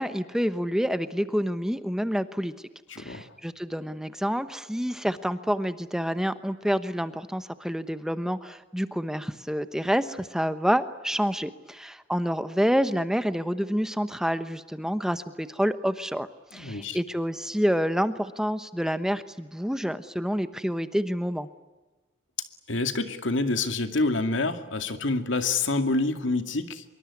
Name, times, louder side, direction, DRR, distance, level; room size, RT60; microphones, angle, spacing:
voice 1, 0.0-2.5 3.0-21.5, equal, 5° right, 11 dB, 1.0 m, -28 dB
voice 2, 2.9-3.2 16.5-17.0 22.7-26.8, left 3 dB, 85° left, 8 dB, 2.3 m, -27 dB
25.5 x 23.5 x 9.7 m, 1.1 s
head